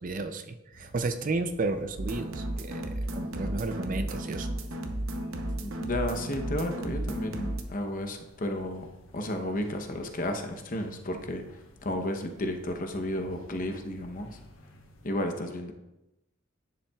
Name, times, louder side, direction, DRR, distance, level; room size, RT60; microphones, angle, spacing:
voice 1, 0.0-4.5, right 3 dB, 40° right, 8 dB, 0.5 m, -32 dB
sound 1, 0.7-15.1, left 1 dB, 70° left, 1.1 m, -54 dB
sound 2, 2.0-7.6, right 1 dB, 70° right, 0.8 m, -34 dB
voice 2, 5.4-14.3 15.0-15.7, left 1 dB, 40° left, 5 dB, 0.8 m, -33 dB
10.0 x 7.1 x 2.3 m, 0.96 s
head